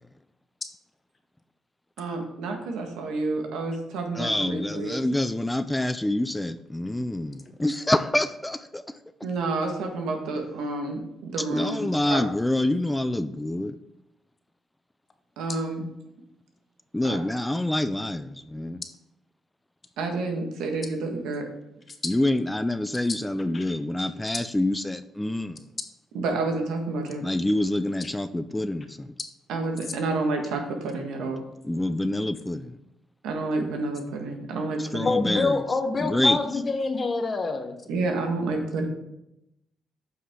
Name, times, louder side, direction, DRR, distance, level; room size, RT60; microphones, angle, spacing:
voice 1, 2.0-5.1 9.2-12.2 15.4-15.9 17.0-17.2 20.0-21.4 26.1-27.2 29.5-31.4 33.2-35.1 37.9-38.9, right 3 dB, 90° right, 1.5 m, -29 dB
voice 2, 4.1-8.8 11.5-13.8 16.9-18.8 22.0-25.6 27.2-29.1 31.6-32.8 34.8-35.6 36.0-36.4, left 1 dB, 10° left, 0.4 m, -26 dB
voice 3, 35.0-37.7, left 3 dB, 35° left, 1.1 m, -27 dB
8.2 x 5.7 x 3.7 m
cardioid pair, 90°, 0 cm